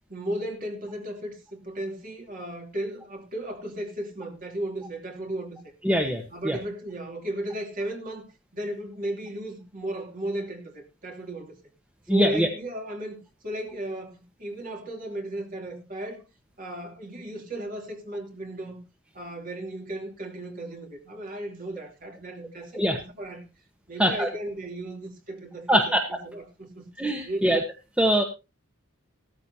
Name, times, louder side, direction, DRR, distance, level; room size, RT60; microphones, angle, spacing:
voice 1, 0.1-5.6 6.3-8.2 8.5-11.5 12.1-16.2 16.6-18.8 19.1-23.4 23.9-26.9 27.2-27.5, right 1 dB, 40° right, 2.8 m, -35 dB
voice 2, 5.8-6.6 12.1-12.5 22.7-23.0 24.0-24.3 25.7-26.0 27.0-27.6 28.0-28.2, equal, 5° right, 1.1 m, -22 dB
15.0 x 13.5 x 2.8 m
head